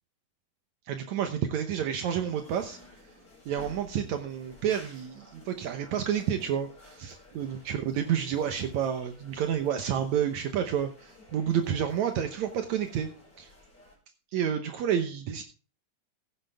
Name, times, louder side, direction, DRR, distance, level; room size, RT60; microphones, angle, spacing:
voice 1, 0.9-2.8 3.5-13.1 13.4-13.5 14.3-15.4, right 9 dB, 70° right, 6 dB, 2.3 m, -30 dB
sound 1, 2.2-14.0, left 1 dB, 30° left, 4.9 m, -53 dB
15.5 x 9.8 x 3.5 m, 0.35 s
omnidirectional pair, 3.5 m